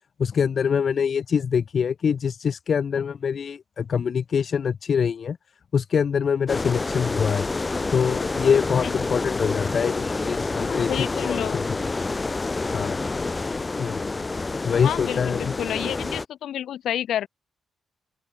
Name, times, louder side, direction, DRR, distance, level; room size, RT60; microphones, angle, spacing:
voice 1, 0.2-5.4 5.7-7.5 7.9-11.6 12.7-13.0 13.8-14.0 14.6-15.5, left 7 dB, 45° left, 1.6 m, -24 dB
sound 1, 6.5-16.3, left 3 dB, 20° left, 5.2 m, -28 dB
voice 2, 10.7-11.6 14.8-17.3, left 11 dB, 80° left, 5.7 m, -29 dB
open air
wide cardioid pair, 150°, 0 cm